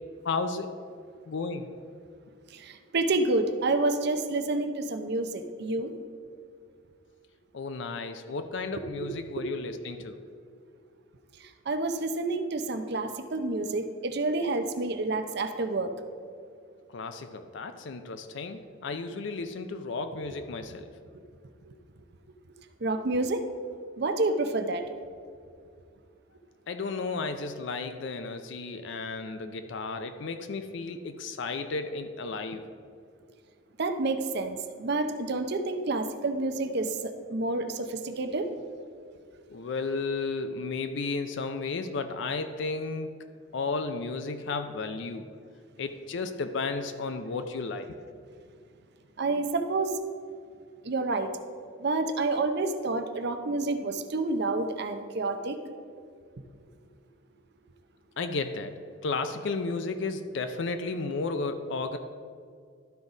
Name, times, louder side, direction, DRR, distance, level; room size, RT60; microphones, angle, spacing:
voice 1, 0.2-0.7 1.3-1.7 7.5-10.2 16.9-20.9 26.7-32.6 39.5-43.2 43.5-45.3 45.8-48.0 58.2-58.7 59.0-62.0, left 4 dB, 60° left, 8 dB, 0.4 m, -33 dB
voice 2, 2.5-5.9 9.0-9.6 11.7-15.9 21.7-21.8 22.8-23.4 24.0-24.8 33.8-38.5 49.2-49.9 50.8-51.3 51.8-55.6, right 2 dB, 55° right, 7 dB, 0.6 m, -29 dB
12.0 x 4.0 x 4.8 m, 2.2 s
head